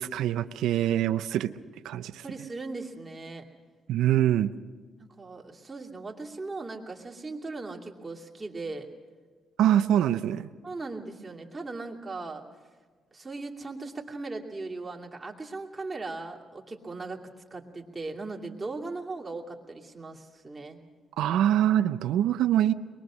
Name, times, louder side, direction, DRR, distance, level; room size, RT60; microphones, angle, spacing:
voice 1, 0.0-1.5 1.8-2.2 3.9-4.5 9.6-10.5 21.2-22.7, right 11 dB, 85° right, 11 dB, 0.6 m, -24 dB
voice 2, 2.0-3.4 5.2-8.9 9.6-9.8 10.6-12.4 13.1-17.2 17.5-20.8, right 3 dB, 25° right, -1 dB, 2.6 m, -38 dB
23.0 x 21.5 x 6.3 m, 1.5 s
cardioid pair, 90°, 0 cm